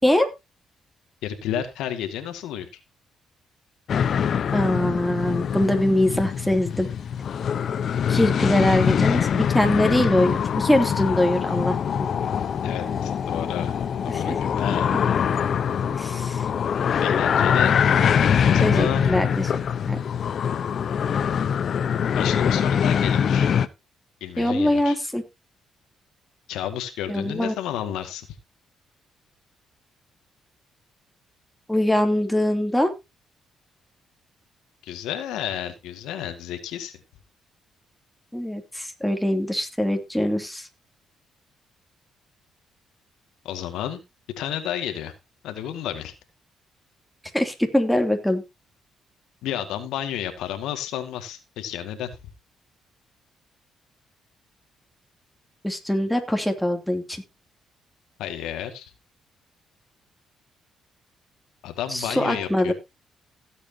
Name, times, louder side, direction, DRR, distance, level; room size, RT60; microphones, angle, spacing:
voice 1, 1.2-2.7 12.6-13.7 14.0-14.9 17.0-17.8 18.5-19.0 22.2-23.5 24.2-25.0 26.5-28.3 34.8-36.9 43.4-44.0 44.4-45.1 45.4-46.1 49.4-52.1 58.2-58.9 61.6-62.7, left 10 dB, 90° left, 7 dB, 2.1 m, -31 dB
sound 1, 3.9-23.7, left 8 dB, 60° left, 0.9 m, -23 dB
voice 2, 4.5-6.9 8.1-12.1 14.1-14.4 16.0-16.5 18.6-19.5 19.9-20.0 24.4-25.2 27.1-27.5 31.7-32.9 38.3-40.7 47.3-48.4 55.6-57.2 61.9-62.7, left 1 dB, ahead, 4 dB, 2.9 m, -23 dB
16.0 x 8.3 x 2.9 m, 0.24 s
cardioid pair, 90°, 0 cm